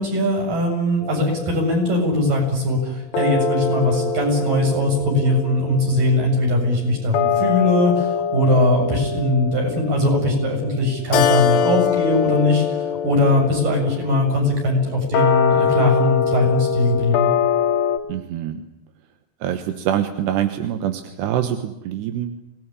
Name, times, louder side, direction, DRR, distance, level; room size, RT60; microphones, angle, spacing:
voice 1, 0.0-17.3, left 1 dB, 40° right, 2 dB, 8.8 m, -20 dB
sound 1, 1.0-2.4 3.1-18.0, left 7 dB, 60° left, 2.7 m, -24 dB
Keyboard (musical), 11.1-14.0, left 10 dB, 85° left, 3.9 m, -25 dB
voice 2, 18.1-18.6 19.4-22.3, right 10 dB, 70° right, 8 dB, 2.9 m, -25 dB
25.5 x 19.5 x 10.0 m, 0.88 s
omnidirectional pair, 5.9 m